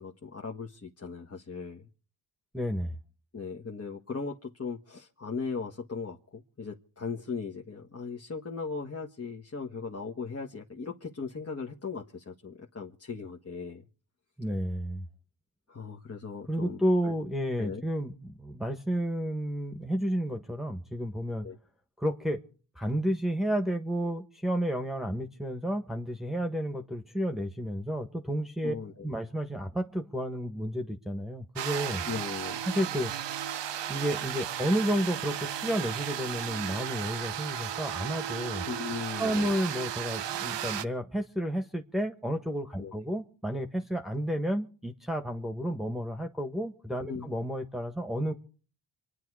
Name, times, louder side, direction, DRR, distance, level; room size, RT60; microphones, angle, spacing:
voice 1, 0.0-1.9 3.3-13.8 15.7-17.1 17.6-17.8 21.4-21.6 28.6-29.1 32.1-32.7 38.7-39.5 42.8-42.9 47.1-47.3, left 5 dB, 30° left, 1.6 m, -38 dB
voice 2, 2.5-3.0 14.4-15.0 16.5-21.5 22.0-22.4 22.7-28.7 29.0-32.0 32.7-33.1 33.9-38.6 39.2-48.3, equal, ahead, 1.5 m, -31 dB
sound 1, 31.5-40.8, right 10 dB, 65° right, 0.9 m, -35 dB
26.5 x 9.8 x 4.8 m
cardioid pair, 60°, 46 cm